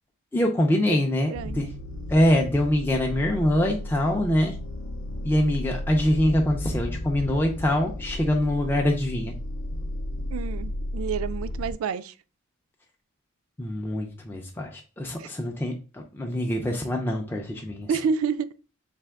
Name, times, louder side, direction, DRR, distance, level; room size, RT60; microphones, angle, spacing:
voice 1, 0.3-1.7 2.1-4.6 5.2-9.3 13.6-17.9, left 1 dB, 10° left, 0.3 m, -24 dB
sound 1, 1.3-11.7, left 1 dB, 65° left, 0.5 m, -34 dB
voice 2, 1.3-1.6 10.3-12.1 15.2-15.3 17.9-18.5, right 6 dB, 70° right, 0.3 m, -29 dB
3.4 x 2.9 x 3.4 m
head